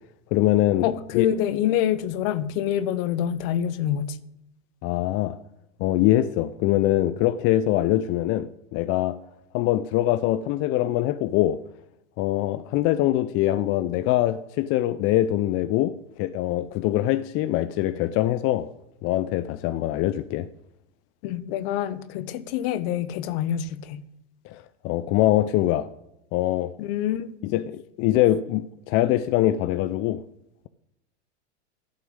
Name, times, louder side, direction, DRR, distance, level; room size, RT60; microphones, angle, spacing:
voice 1, 0.3-0.9 1.1-1.3 4.8-5.4 5.8-9.2 9.5-11.6 12.2-18.7 19.0-20.5 24.4-25.9 26.3-26.7 27.4-30.2, left 14 dB, 40° left, 0.5 m, -23 dB
voice 2, 0.8-4.2 21.2-24.0 26.8-27.3, left 10 dB, 55° left, 1.0 m, -26 dB
11.5 x 6.1 x 8.8 m
hypercardioid pair, 110°, 34 cm